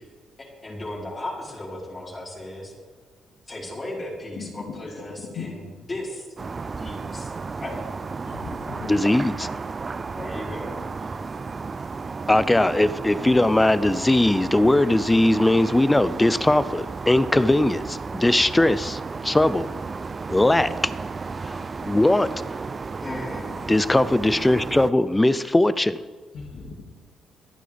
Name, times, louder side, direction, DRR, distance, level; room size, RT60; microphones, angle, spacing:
voice 1, 0.6-2.7 3.5-5.6 5.9-6.3 6.8-7.3 7.6-7.7 10.1-11.1 23.0-23.7, left 1 dB, 30° left, 4.4 m, -35 dB
voice 2, 4.4-5.5 8.2-8.9 26.3-26.8, left 5 dB, 70° left, 2.2 m, -38 dB
sound 1, 6.4-24.9, right 4 dB, 35° right, 0.5 m, -33 dB
voice 3, 8.9-9.5 12.3-19.7 20.3-20.7 21.4-22.3 23.7-26.0, left 1 dB, 10° left, 0.6 m, -20 dB
25.5 x 9.1 x 3.5 m
cardioid pair, 90°, 0 cm